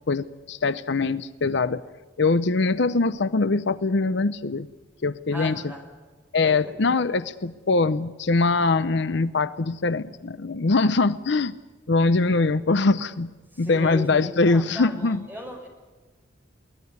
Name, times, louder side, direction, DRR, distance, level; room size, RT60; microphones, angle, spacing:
voice 1, 0.1-1.8 2.2-4.7 5.0-5.6 6.3-11.5 11.9-13.3 13.6-15.3, left 3 dB, 60° left, 14 dB, 0.7 m, -22 dB
voice 2, 5.3-5.8 6.4-6.7 13.5-15.7, left 1 dB, 10° right, 2 dB, 6.0 m, -37 dB
23.5 x 18.5 x 9.5 m, 1.3 s
head